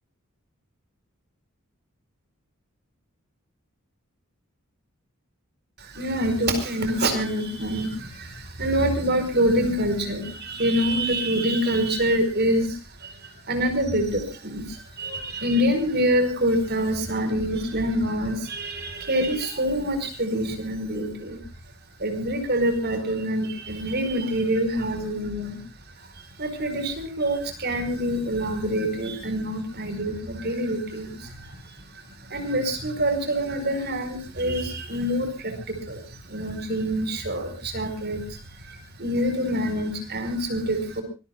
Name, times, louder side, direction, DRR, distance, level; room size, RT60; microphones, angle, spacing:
voice 1, 5.8-21.4 22.0-41.0, equal, 45° right, 9 dB, 4.8 m, -26 dB
25.5 x 20.5 x 2.4 m, 0.32 s
head